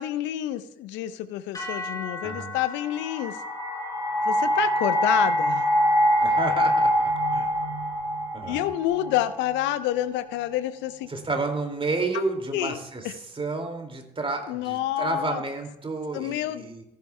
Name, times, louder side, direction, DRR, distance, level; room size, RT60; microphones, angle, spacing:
voice 1, 0.0-3.4 4.2-5.7 8.5-11.1 12.5-12.8 13.0-13.1 14.5-15.4 16.1-16.8, left 13 dB, 65° left, 12 dB, 0.6 m, -28 dB
sound 1, 1.5-9.8, left 2 dB, 15° left, 4.7 m, -42 dB
sound 2, 2.6-9.7, equal, 90° left, 1.7 m, -24 dB
voice 2, 6.2-7.5 8.3-8.6 11.1-13.0 13.3-16.8, right 3 dB, 25° right, 4 dB, 2.4 m, -30 dB
15.5 x 11.0 x 2.2 m, 0.84 s
figure-of-eight pair, 45°, 21 cm